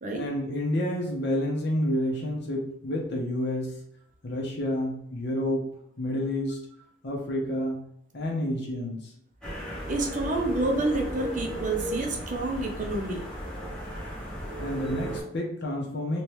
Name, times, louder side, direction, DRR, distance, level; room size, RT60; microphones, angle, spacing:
voice 1, 0.1-3.8 4.2-5.7 6.0-6.6 7.0-7.8 8.1-9.0 14.6-16.2, left 1 dB, 60° left, -1 dB, 1.0 m, -29 dB
sound 1, 9.4-15.2, equal, 5° left, 1.0 m, -35 dB
voice 2, 9.9-13.3, right 2 dB, 40° right, 2 dB, 0.7 m, -28 dB
3.1 x 3.0 x 3.2 m, 0.73 s
head